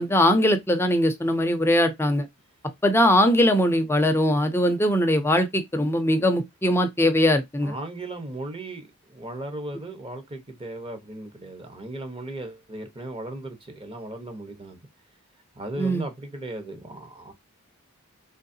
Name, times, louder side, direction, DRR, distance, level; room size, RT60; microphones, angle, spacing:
voice 1, 0.0-2.3 2.8-7.7 15.8-16.0, equal, 10° left, 0.6 m, -21 dB
voice 2, 7.6-14.8 15.6-17.3, right 1 dB, 25° right, 0.9 m, -36 dB
3.9 x 3.1 x 2.6 m
head